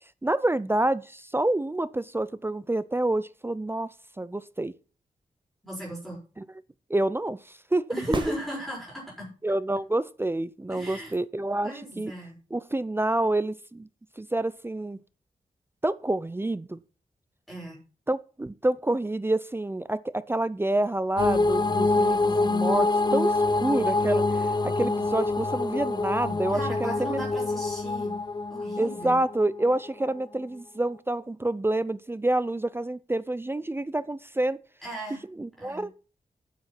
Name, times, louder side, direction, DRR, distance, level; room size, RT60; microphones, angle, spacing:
voice 1, 0.2-3.9 4.2-4.7 6.4-6.5 6.9-7.8 9.4-12.1 12.5-13.9 14.2-15.0 15.8-16.8 18.1-27.2 28.8-34.6 35.4-35.9, right 1 dB, 15° right, 0.5 m, -28 dB
voice 2, 5.6-6.2 7.9-9.3 10.7-11.1 11.6-12.4 17.5-17.8 26.5-28.1 28.5-29.2 34.8-35.2 35.6-35.8, equal, ahead, 5.9 m, -36 dB
sound 1, 8.1-9.2 13.1-13.2, right 2 dB, 35° right, 2.0 m, -35 dB
sound 2, 21.2-29.9, left 3 dB, 30° left, 0.8 m, -26 dB
9.4 x 7.3 x 5.9 m
wide cardioid pair, 95°, 14 cm